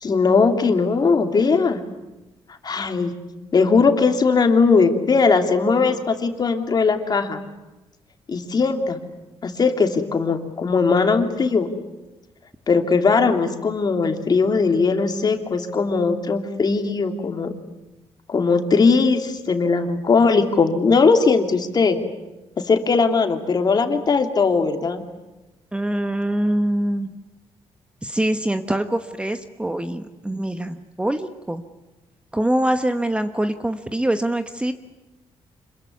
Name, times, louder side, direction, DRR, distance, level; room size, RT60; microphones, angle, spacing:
voice 1, 0.0-1.8 2.6-3.1 3.5-7.4 8.3-9.0 9.4-11.7 12.7-17.5 18.3-22.0 22.7-25.0, left 4 dB, 40° left, 5 dB, 2.9 m, -19 dB
voice 2, 25.7-27.1 28.0-31.6 32.3-34.7, right 1 dB, 10° right, 8 dB, 1.2 m, -24 dB
26.5 x 22.0 x 9.5 m, 1.0 s
cardioid pair, 105°, 11 cm